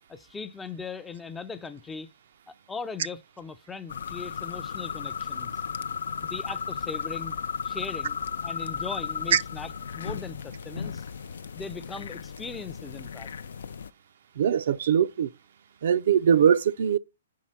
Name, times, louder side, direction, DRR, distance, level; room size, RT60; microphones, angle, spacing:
voice 1, 0.1-2.1 2.5-5.6 6.2-7.4 7.6-11.0 11.5-13.3, left 5 dB, 10° left, 0.4 m, -39 dB
sound 1, 3.9-13.9, left 6 dB, 75° left, 0.4 m, -35 dB
voice 2, 14.4-15.3 15.8-17.0, right 8 dB, 65° right, 0.4 m, -21 dB
5.5 x 4.6 x 5.7 m
hypercardioid pair, 145°, 0 cm